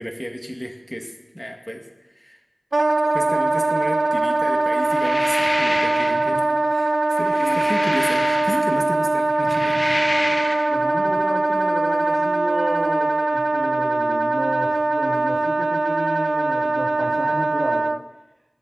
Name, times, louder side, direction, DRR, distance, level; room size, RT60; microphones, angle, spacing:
voice 1, 0.0-1.9 2.1-2.4 3.1-6.4 6.7-9.8, equal, 15° left, 3 dB, 1.7 m, -32 dB
Wind instrument woodwind instrument, 2.7-18.0, right 2 dB, 75° right, 0.3 m, -21 dB
sound 1, 4.8-6.3 7.1-8.9 9.4-10.7, left 1 dB, 50° left, 0.8 m, -28 dB
voice 2, 10.7-17.9, right 1 dB, 55° right, 0 dB, 2.3 m, -32 dB
20.0 x 7.4 x 4.0 m, 1.1 s
wide cardioid pair, 40°, 0 cm